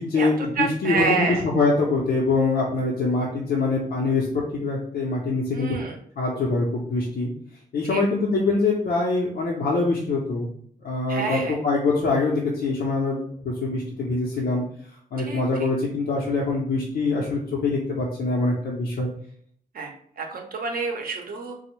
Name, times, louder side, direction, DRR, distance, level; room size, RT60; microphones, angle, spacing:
voice 1, 0.0-5.8 6.2-7.3 7.7-10.5 10.8-14.6 15.1-19.1, left 3 dB, 85° left, -3 dB, 0.5 m, -24 dB
voice 2, 0.6-1.4 5.5-6.0 7.9-8.0 11.1-11.5 15.3-15.4 19.7-21.5, right 4 dB, 70° right, 2 dB, 0.6 m, -28 dB
3.3 x 2.0 x 3.0 m, 0.62 s
wide cardioid pair, 100°, 15 cm